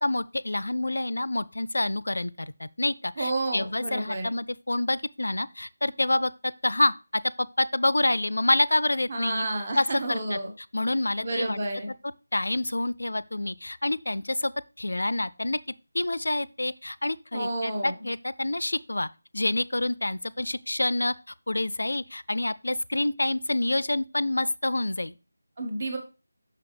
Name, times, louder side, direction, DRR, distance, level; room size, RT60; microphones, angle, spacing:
voice 1, 0.0-9.5 9.8-10.4 10.7-11.6 12.3-14.5 14.8-15.6 15.9-25.1, left 2 dB, 75° left, 0.3 m, -27 dB
voice 2, 3.2-4.3 9.1-10.5 11.2-11.9 17.3-17.9 25.6-26.0, right 2 dB, 40° right, 1.6 m, -30 dB
6.0 x 5.9 x 3.3 m
figure-of-eight pair, 165°, 0 cm